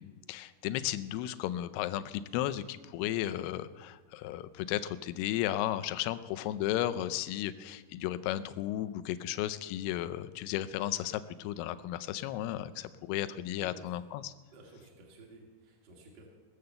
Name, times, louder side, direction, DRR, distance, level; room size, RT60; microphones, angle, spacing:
voice 1, 0.0-14.3, left 13 dB, 85° left, 12 dB, 2.6 m, -34 dB
voice 2, 14.5-16.3, right 3 dB, 30° right, 0 dB, 2.4 m, -53 dB
19.5 x 7.8 x 6.7 m, 1.3 s
omnidirectional pair, 4.5 m